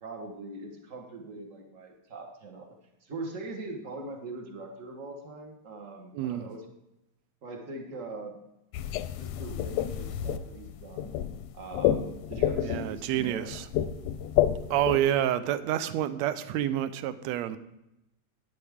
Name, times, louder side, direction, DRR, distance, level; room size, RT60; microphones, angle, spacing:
voice 1, 0.0-2.7 3.0-6.6 7.4-8.4 9.2-11.2 11.5-13.5, right 2 dB, 50° right, 0.9 m, -41 dB
voice 2, 6.1-6.5 12.6-13.7 14.7-17.6, right 12 dB, 80° right, 1.7 m, -28 dB
sound 1, 8.7-15.0, left 11 dB, 80° left, 1.7 m, -29 dB
11.5 x 9.9 x 3.6 m
omnidirectional pair, 3.4 m